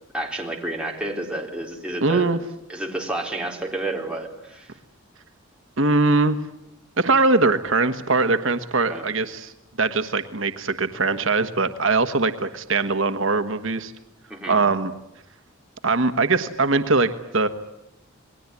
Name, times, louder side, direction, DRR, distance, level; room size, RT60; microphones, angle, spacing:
voice 1, 0.1-2.3 2.7-4.7 8.9-9.0 14.3-14.6, right 2 dB, 5° right, 0 dB, 3.9 m, -30 dB
voice 2, 2.0-2.4 5.8-6.4 7.0-9.5 9.8-13.9 14.5-14.9 15.8-17.5, right 3 dB, 65° right, 9 dB, 1.4 m, -21 dB
28.5 x 21.0 x 9.8 m, 0.83 s
head